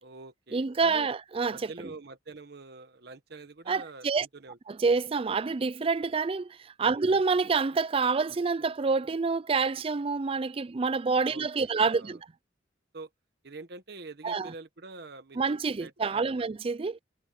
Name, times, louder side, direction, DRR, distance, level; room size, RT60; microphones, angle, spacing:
voice 1, 0.0-1.1 1.5-4.6 6.8-7.0 11.3-12.2 12.9-13.1 13.4-15.4 15.6-16.5, right 3 dB, 60° right, 1.2 m, -46 dB
voice 2, 0.5-1.7 3.7-4.3 4.7-12.2 14.2-14.5 15.4-17.0, right 4 dB, 30° right, 0.4 m, -27 dB
head